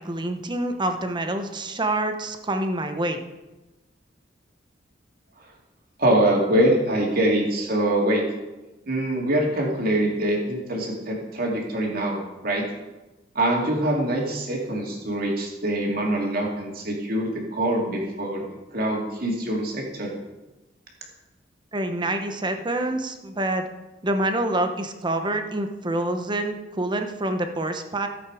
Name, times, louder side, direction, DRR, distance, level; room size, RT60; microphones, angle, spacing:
voice 1, 0.0-3.2 21.7-23.6 24.0-28.1, right 1 dB, 25° right, 6 dB, 1.0 m, -26 dB
voice 2, 6.0-8.2 8.9-12.6 13.3-18.4 18.7-20.1, right 1 dB, 55° right, -1 dB, 2.7 m, -24 dB
15.0 x 8.1 x 4.9 m, 1.1 s
head